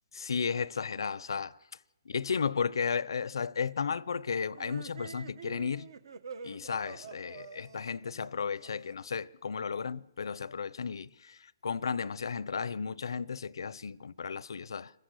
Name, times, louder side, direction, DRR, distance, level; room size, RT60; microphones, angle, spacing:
voice 1, 0.1-1.5 2.1-5.9 6.4-14.9, left 6 dB, 80° left, 0.6 m, -34 dB
sound 1, 4.5-9.2, right 6 dB, 70° right, 1.5 m, -47 dB
26.5 x 15.0 x 8.3 m
hypercardioid pair, 150°, 2 cm